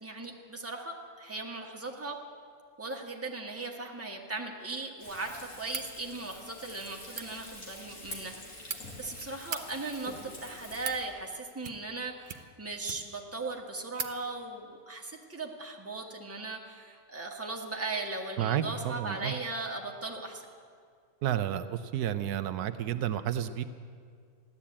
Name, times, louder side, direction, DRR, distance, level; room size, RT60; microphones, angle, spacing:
voice 1, 0.0-2.2 2.8-20.4, right 3 dB, 10° right, 1 dB, 1.3 m, -38 dB
Frying (food), 5.0-11.1, left 1 dB, 65° left, 3.0 m, -46 dB
sound 1, 5.6-5.9 7.0-7.3 8.3-8.8 9.4-9.6 10.4-11.0 11.6-12.0 12.3-13.2 13.6-13.7 13.9-14.1, right 6 dB, 45° right, 0.7 m, -39 dB
voice 2, 18.4-19.4 21.2-23.6, right 10 dB, 80° right, 11 dB, 1.1 m, -31 dB
15.0 x 11.5 x 8.6 m, 2.1 s
omnidirectional pair, 1.6 m